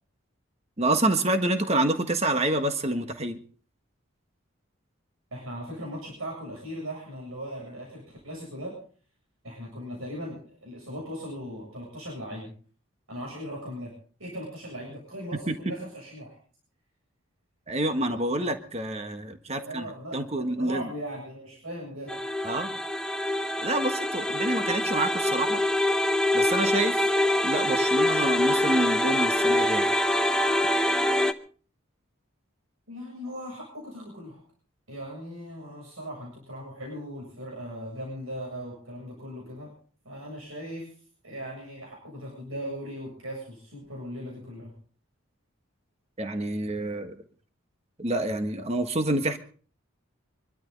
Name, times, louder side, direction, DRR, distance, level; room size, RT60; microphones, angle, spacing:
voice 1, 0.8-3.4 15.5-15.6 17.7-20.9 22.4-22.7 23.6-25.6 26.3-27.0 27.4-29.9 46.2-47.1 48.0-49.4, right 1 dB, 30° right, 7 dB, 1.5 m, -27 dB
voice 2, 5.3-8.8 9.4-12.5 13.1-16.3 18.4-18.5 19.6-22.3 32.9-34.4 34.9-39.7 40.0-40.9 41.2-44.7, equal, 85° right, -3 dB, 7.6 m, -38 dB
sound 1, 22.1-31.3, left 1 dB, 5° left, 0.8 m, -25 dB
26.0 x 12.5 x 4.0 m, 0.43 s
head